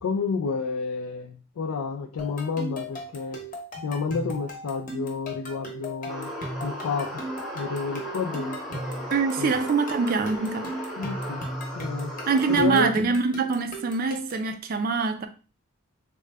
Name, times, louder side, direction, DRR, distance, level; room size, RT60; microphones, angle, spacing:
voice 1, 0.0-3.4 3.8-6.3 6.6-7.2 7.5-8.8 9.4-9.5 11.0-11.4 11.7-12.1 12.5-12.9, left 5 dB, 85° left, 0.4 m, -30 dB
sound 1, 2.2-14.5, equal, 40° left, 0.8 m, -37 dB
sound 2, 6.1-12.6, equal, ahead, 0.7 m, -36 dB
voice 2, 9.1-10.7 12.3-15.3, right 4 dB, 40° right, 0.3 m, -24 dB
3.6 x 2.1 x 3.3 m
head